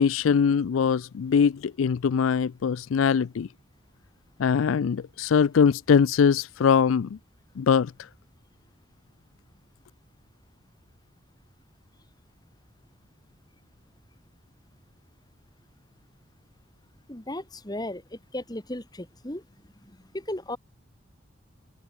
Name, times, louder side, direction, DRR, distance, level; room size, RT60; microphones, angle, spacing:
voice 1, 0.0-3.5 4.4-7.2 7.6-7.9, left 6 dB, 75° left, 0.4 m, -22 dB
voice 2, 17.1-19.4 19.9-20.6, left 1 dB, 20° left, 1.9 m, -36 dB
head